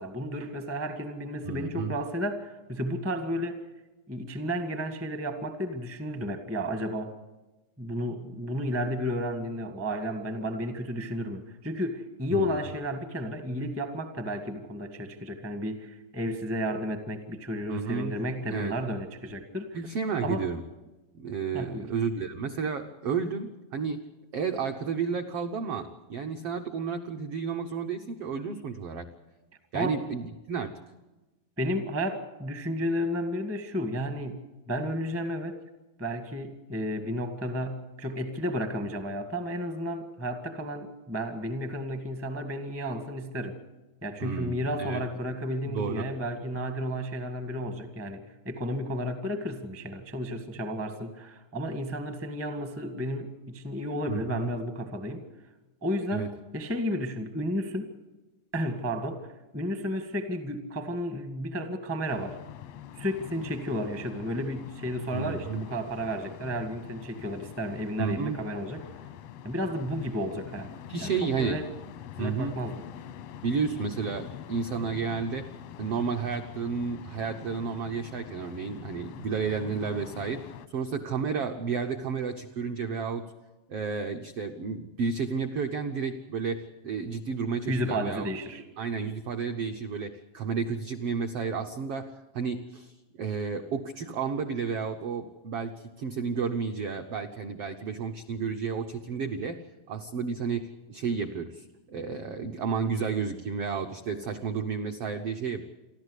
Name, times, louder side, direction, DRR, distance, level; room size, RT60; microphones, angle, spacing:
voice 1, 0.0-3.6 4.1-7.1 7.8-19.8 20.2-20.5 21.5-21.9 29.7-30.0 31.6-35.6 36.0-43.6 44.0-55.2 55.8-57.9 58.5-59.3 59.5-62.4 62.9-68.9 69.4-70.7 71.0-71.7 72.2-72.8 87.7-88.6, equal, 20° right, 7 dB, 0.3 m, -32 dB
voice 2, 1.4-1.9 12.3-12.6 17.7-18.1 18.5-18.7 19.7-20.6 21.1-24.0 24.3-29.1 29.7-30.7 44.2-45.0 45.6-46.1 54.1-54.5 56.1-56.3 65.1-65.6 68.0-68.4 70.9-71.6 72.2-72.5 73.4-75.5 75.8-80.4 80.7-83.2 83.7-99.6 99.9-105.6, right 5 dB, 80° right, 5 dB, 1.3 m, -32 dB
sound 1, 62.1-80.7, left 10 dB, 80° left, 1.4 m, -45 dB
28.5 x 12.0 x 8.2 m, 1.1 s
omnidirectional pair, 4.0 m